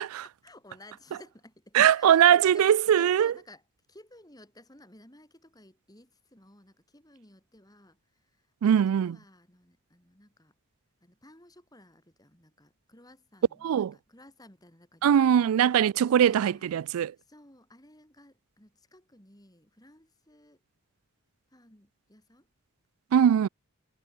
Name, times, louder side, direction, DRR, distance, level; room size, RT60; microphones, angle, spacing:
voice 1, 0.0-2.7 3.0-3.6 3.9-10.5 11.0-15.4 16.1-20.6 21.5-22.5, left 1 dB, 15° left, 4.5 m, -55 dB
voice 2, 1.7-3.3 8.6-9.2 13.6-13.9 15.0-17.1 23.1-23.5, right 9 dB, 75° right, 0.3 m, -21 dB
head